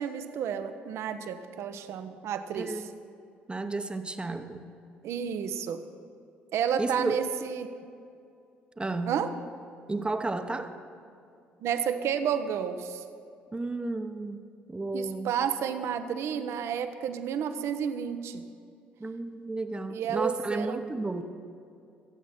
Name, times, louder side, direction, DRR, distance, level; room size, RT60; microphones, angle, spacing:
voice 1, 0.0-2.8 5.0-5.8 6.5-7.7 9.0-9.3 11.6-13.0 14.9-18.4 19.9-20.9, right 8 dB, 60° right, 9 dB, 0.9 m, -31 dB
voice 2, 2.5-2.9 3.5-4.7 6.8-7.2 8.8-9.2 9.9-10.7 13.5-14.4 14.7-15.3 19.0-21.2, right 2 dB, 20° right, 8 dB, 1.0 m, -32 dB
22.5 x 8.3 x 4.4 m, 2.5 s
hypercardioid pair, 50°, 5 cm